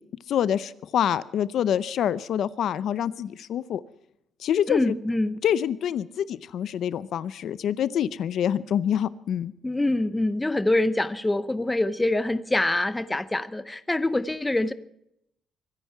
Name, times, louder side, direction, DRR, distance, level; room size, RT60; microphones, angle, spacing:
voice 1, 0.3-3.8 4.4-4.9 5.4-9.5, left 9 dB, 55° left, 17 dB, 0.6 m, -26 dB
voice 2, 4.7-5.4 9.6-14.7, left 2 dB, 10° left, 14 dB, 0.6 m, -25 dB
23.0 x 10.5 x 5.6 m, 0.77 s
cardioid pair, 180°, 0 cm